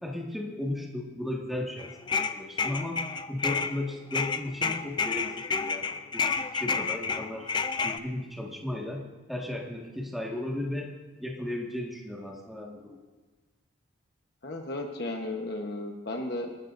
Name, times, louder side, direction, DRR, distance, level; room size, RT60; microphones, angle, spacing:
voice 1, 0.0-7.5 7.8-10.9 11.2-13.0, left 1 dB, ahead, -1 dB, 1.7 m, -35 dB
sound 1, 1.8-3.8 4.1-8.0, left 5 dB, 25° left, 0.4 m, -30 dB
voice 2, 14.4-16.5, left 2 dB, 55° left, 2 dB, 1.2 m, -34 dB
27.5 x 12.5 x 2.6 m, 1.3 s
head